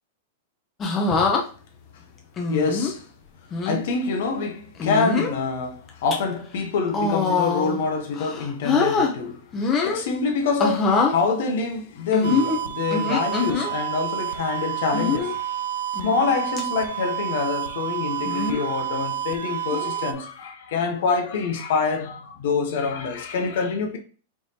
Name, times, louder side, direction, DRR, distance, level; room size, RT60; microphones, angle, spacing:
sound 1, 0.8-1.4 2.4-2.9 3.5-3.8 4.8-5.4 5.9-6.2 6.9-7.8 8.2-9.1 9.5-10.0 10.6-11.2 12.1-13.7 14.9-15.3 16.0-16.3 16.6-16.7 18.3-18.7 19.7-20.0, left 4 dB, 25° left, 0.9 m, -23 dB
voice 1, 2.5-3.1 3.6-9.5 9.8-15.4 15.8-24.0, left 4 dB, 65° left, 0.8 m, -26 dB
sound 2, 12.2-20.1, right 10 dB, 85° right, 0.5 m, -29 dB
4.7 x 3.2 x 2.8 m
hypercardioid pair, 115°, 0 cm